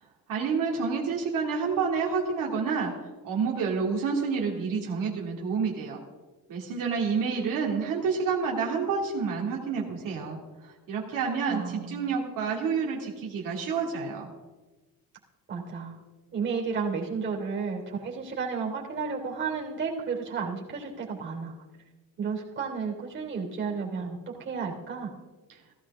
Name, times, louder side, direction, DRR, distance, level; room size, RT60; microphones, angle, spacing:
voice 1, 0.3-2.9 3.2-6.0 6.5-14.3, right 5 dB, 65° right, -2 dB, 2.5 m, -29 dB
voice 2, 11.5-12.1 15.5-16.0 16.3-21.5 22.2-25.1, right 5 dB, 35° right, -1 dB, 3.1 m, -32 dB
16.5 x 15.0 x 3.6 m, 1.2 s
cardioid pair, 160°, 35 cm